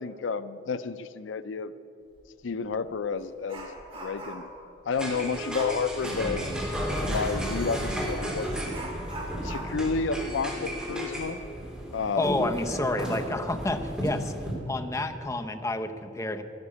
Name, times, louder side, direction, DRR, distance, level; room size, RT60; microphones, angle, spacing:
voice 1, 0.0-1.7 2.4-4.5 4.8-6.4 7.0-8.6 9.3-11.4 11.9-12.5, left 4 dB, 85° left, 14 dB, 0.5 m, -31 dB
Dog, 2.1-2.3 2.7-4.6 5.5-5.9 7.8-8.0 8.7-12.0 12.3-12.4 12.9-13.0 13.7-14.1 14.5-14.7, right 1 dB, 30° right, 2.6 m, -42 dB
sound 1, 4.9-14.5, equal, 5° right, 3.2 m, -33 dB
voice 2, 12.2-14.3 14.7-16.4, left 2 dB, 15° left, 7 dB, 0.8 m, -29 dB
13.0 x 11.5 x 8.4 m, 2.8 s
head